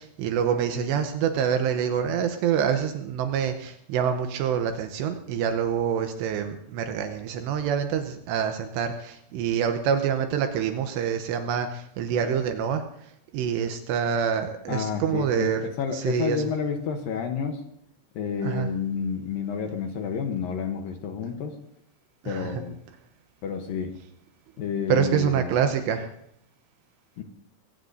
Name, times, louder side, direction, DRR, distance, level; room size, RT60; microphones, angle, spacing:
voice 1, 0.0-12.8 13.3-15.6 15.9-16.4 18.4-18.7 22.2-22.6 24.9-26.1, right 8 dB, 80° right, 6 dB, 3.1 m, -26 dB
voice 2, 14.7-17.6 18.2-21.6 22.2-22.8 23.4-24.0 24.6-25.7 27.2-27.3, left 6 dB, 70° left, 5 dB, 2.3 m, -30 dB
23.5 x 18.0 x 2.7 m, 0.73 s
omnidirectional pair, 5.1 m